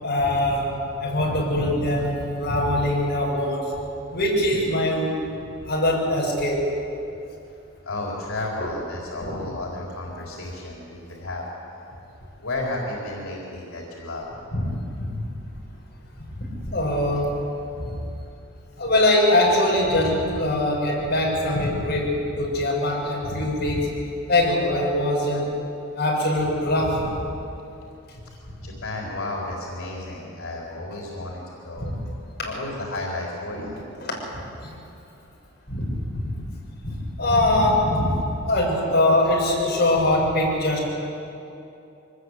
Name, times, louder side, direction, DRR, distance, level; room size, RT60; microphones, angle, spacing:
voice 1, 0.0-3.7 4.1-5.2 5.6-6.7 9.2-9.4 14.5-15.0 16.4-17.5 17.7-18.0 18.8-24.0 24.3-25.6 25.9-27.1 31.8-31.9 33.5-33.6 34.0-34.1 34.6-34.7 35.7-36.3 36.8-41.0, left 1 dB, 50° left, -3 dB, 6.6 m, -22 dB
voice 2, 7.8-11.5 12.4-14.3 28.6-31.9 32.4-33.8, left 2 dB, 90° left, -3 dB, 4.2 m, -32 dB
24.0 x 19.5 x 8.3 m, 2.7 s
head